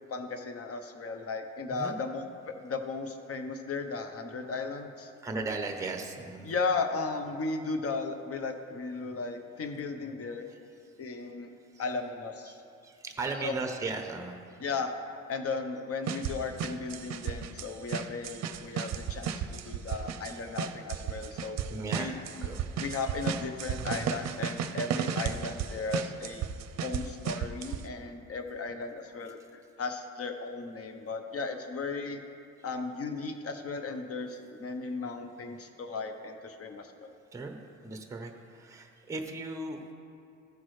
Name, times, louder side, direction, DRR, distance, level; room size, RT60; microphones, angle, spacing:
voice 1, 0.1-5.1 6.4-10.5 11.0-11.5 11.8-12.6 13.4-13.6 14.6-14.9 15.3-21.6 21.9-22.5 22.8-26.5 26.8-29.4 29.8-32.2 32.6-37.1, left 4 dB, 50° left, 7 dB, 0.9 m, -35 dB
voice 2, 5.2-6.5 11.7-11.8 12.5-12.6 12.8-14.4 18.7-18.8 20.3-20.4 21.7-22.6 37.3-37.6 37.8-39.8, right 3 dB, 10° right, 4 dB, 0.8 m, -37 dB
sound 1, 16.1-27.8, right 8 dB, 60° right, 0.5 m, -34 dB
14.5 x 6.1 x 3.2 m, 2.6 s
cardioid pair, 90°, 30 cm